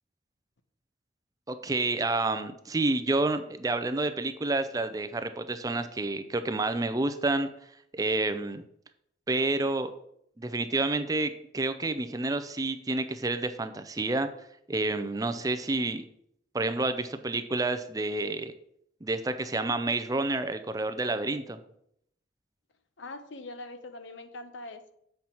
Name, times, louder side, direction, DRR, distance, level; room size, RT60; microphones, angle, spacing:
voice 1, 1.5-7.5 7.9-8.6 9.3-9.9 10.4-14.3 14.7-16.0 16.5-18.5 19.0-21.6, right 2 dB, 20° right, 10 dB, 0.4 m, -29 dB
voice 2, 23.0-24.9, left 2 dB, 75° left, 9 dB, 0.8 m, -42 dB
7.8 x 5.5 x 4.4 m, 0.72 s
head